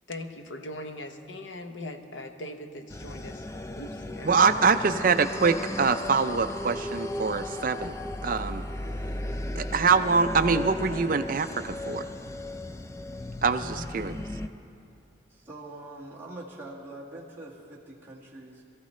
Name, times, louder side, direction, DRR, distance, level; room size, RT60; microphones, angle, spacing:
voice 1, 0.1-5.0, left 1 dB, 75° left, 6 dB, 0.9 m, -41 dB
sound 1, 2.9-14.5, left 1 dB, 15° left, 0.3 m, -36 dB
voice 2, 4.2-7.9 8.2-8.6 9.6-12.1 13.4-14.2, right 5 dB, 45° right, 9 dB, 0.5 m, -24 dB
voice 3, 15.3-18.6, right 2 dB, 10° right, -6 dB, 1.7 m, -43 dB
22.0 x 14.5 x 3.2 m, 2.6 s
head